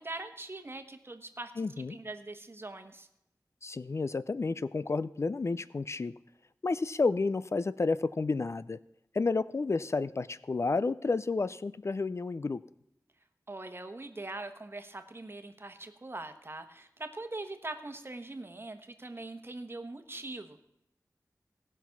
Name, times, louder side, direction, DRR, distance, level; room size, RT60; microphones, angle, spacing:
voice 1, 0.0-3.1 13.5-20.6, right 2 dB, 35° right, 7 dB, 1.2 m, -42 dB
voice 2, 1.6-2.0 3.6-6.1 6.6-8.8 9.1-12.6, left 3 dB, 45° left, 16 dB, 0.3 m, -31 dB
18.0 x 6.1 x 5.8 m, 0.82 s
wide cardioid pair, 75°, 6 cm